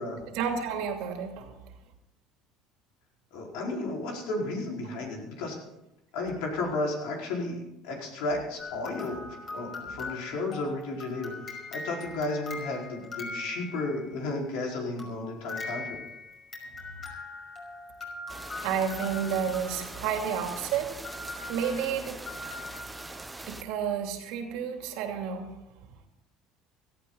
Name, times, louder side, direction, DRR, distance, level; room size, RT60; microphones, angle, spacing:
voice 1, 0.3-1.5 18.6-20.9 21.5-22.2 23.5-25.5, right 7 dB, 75° right, 4 dB, 2.8 m, -30 dB
voice 2, 3.3-5.6 6.1-15.9, left 2 dB, 80° left, -1 dB, 4.7 m, -33 dB
sound 1, 8.6-14.1 15.0-23.5, left 3 dB, 35° left, 5.5 m, -41 dB
sound 2, 18.3-23.6, right 2 dB, 10° right, 0.9 m, -42 dB
17.5 x 14.0 x 4.0 m, 0.88 s
supercardioid pair, 110°, 0 cm